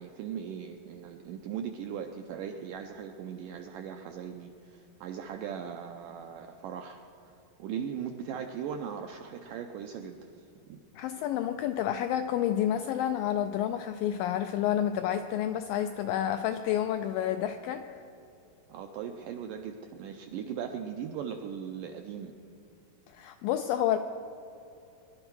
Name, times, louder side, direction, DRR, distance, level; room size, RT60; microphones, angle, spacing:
voice 1, 0.0-7.3 7.6-10.3 10.7-10.8 18.7-22.3, right 8 dB, 85° right, 5 dB, 1.9 m, -39 dB
voice 2, 11.0-18.0 23.1-24.0, left 10 dB, 85° left, 8 dB, 2.0 m, -29 dB
22.5 x 11.5 x 4.7 m, 2.9 s
omnidirectional pair, 4.5 m